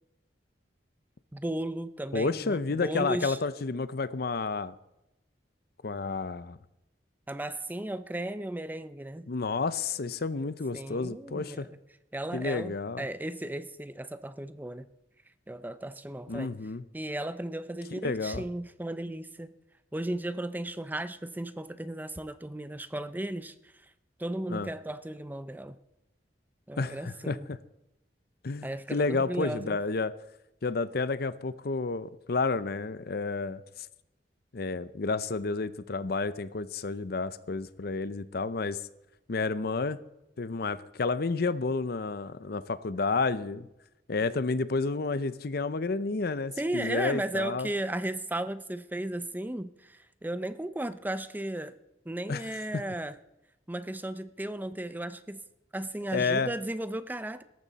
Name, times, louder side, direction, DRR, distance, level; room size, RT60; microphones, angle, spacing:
voice 1, 1.3-3.4 7.3-9.3 10.7-11.7 12.1-14.9 15.5-16.5 16.9-19.5 19.9-23.5 24.2-25.8 26.7-27.5 28.6-29.8 46.6-51.8 52.1-53.2 53.7-55.4 55.7-57.4, right 1 dB, 10° right, 0.6 m, -35 dB
voice 2, 2.1-4.7 5.8-6.6 9.3-11.7 12.3-13.1 16.3-16.8 17.9-18.4 24.5-24.7 26.8-27.6 28.4-30.1 30.6-33.6 34.5-38.8 39.3-40.0 40.4-43.7 44.1-47.7 52.3-52.5 52.7-52.8 56.1-56.5, left 3 dB, 60° left, 0.7 m, -30 dB
17.5 x 14.0 x 4.1 m
head